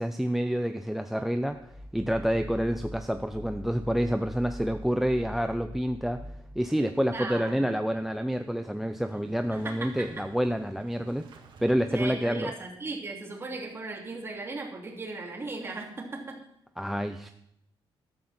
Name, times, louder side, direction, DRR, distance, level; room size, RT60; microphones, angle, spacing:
voice 1, 0.0-6.2 6.6-11.3 11.6-12.5 16.8-17.3, equal, 5° right, 9 dB, 0.5 m, -28 dB
sound 1, 1.4-6.9, equal, 15° left, 2.7 m, -43 dB
Motorcycle / Engine starting, 6.9-12.7, right 4 dB, 60° right, 1.9 m, -54 dB
voice 2, 7.1-7.7 9.5-10.2 11.9-16.4, right 3 dB, 25° right, 1 dB, 3.0 m, -37 dB
14.5 x 12.5 x 4.3 m, 0.75 s
wide cardioid pair, 150°, 9 cm